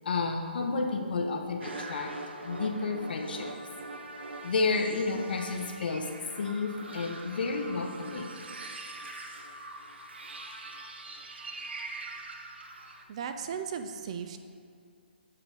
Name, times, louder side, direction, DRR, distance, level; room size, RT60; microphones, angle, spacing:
voice 1, 0.0-2.1 2.4-3.5 4.4-6.1 6.4-8.4, left 4 dB, 60° left, 4 dB, 0.8 m, -31 dB
sound 1, 1.6-13.0, right 2 dB, 75° right, 0.7 m, -43 dB
voice 2, 13.1-14.4, right 7 dB, 35° right, 7 dB, 0.3 m, -36 dB
7.7 x 3.8 x 4.6 m, 2.3 s
hypercardioid pair, 155°, 6 cm